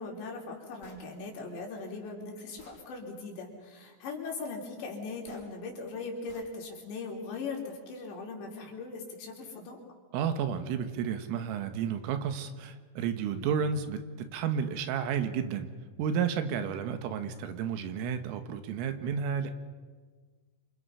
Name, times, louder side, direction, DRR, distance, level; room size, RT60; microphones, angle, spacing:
voice 1, 0.0-9.8, left 4 dB, 60° left, 0 dB, 5.5 m, -39 dB
Gunshot gunfire, 0.8-1.1 2.0-2.1 2.6-2.8 5.3-5.5 6.3-6.5, left 2 dB, 25° left, 4.3 m, -55 dB
voice 2, 10.1-15.7 16.0-19.5, right 7 dB, 90° right, 8 dB, 4.1 m, -32 dB
27.5 x 26.5 x 5.7 m, 1.5 s
omnidirectional pair, 5.7 m